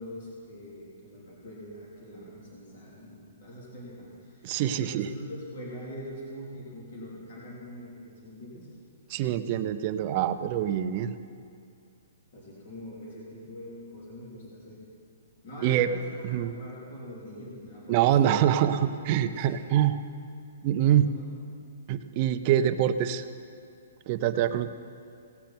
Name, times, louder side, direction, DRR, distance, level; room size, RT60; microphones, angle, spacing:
voice 1, 0.0-8.7 12.3-14.8 15.4-18.3 18.9-19.5 21.0-21.2 24.3-24.5, equal, 45° left, -6 dB, 3.2 m, -43 dB
voice 2, 4.4-5.1 9.1-11.1 15.6-15.9 16.2-16.6 17.9-20.0 20.6-21.1 21.9-23.2 24.1-24.7, right 11 dB, 25° right, 10 dB, 0.4 m, -25 dB
18.0 x 6.5 x 5.9 m, 2.4 s
hypercardioid pair, 180°, 0 cm